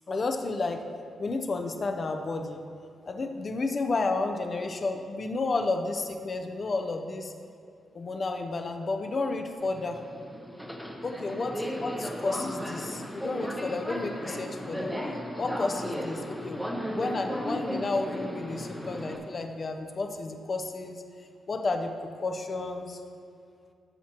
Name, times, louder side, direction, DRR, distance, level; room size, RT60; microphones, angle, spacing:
voice 1, 0.1-0.8 1.2-2.6 3.1-7.3 7.9-10.0 11.0-14.9 15.4-21.0 21.5-23.0, left 3 dB, 30° left, 4 dB, 0.6 m, -31 dB
Subway metro underground, 9.6-19.2, equal, ahead, 0.8 m, -35 dB
15.0 x 7.3 x 2.9 m, 2.4 s
wide cardioid pair, 165°, 0 cm